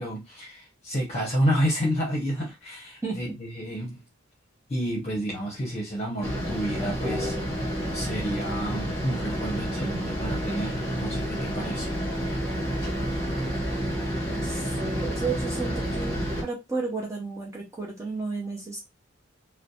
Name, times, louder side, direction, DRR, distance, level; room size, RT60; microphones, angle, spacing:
voice 1, 0.0-4.0 4.7-7.3 7.9-11.9, equal, 35° left, 0.7 m, -30 dB
sound 1, 6.2-16.4, equal, 15° left, 1.1 m, -29 dB
voice 2, 14.2-16.1 16.4-18.8, right 4 dB, 15° right, 0.4 m, -33 dB
2.5 x 2.1 x 2.7 m
head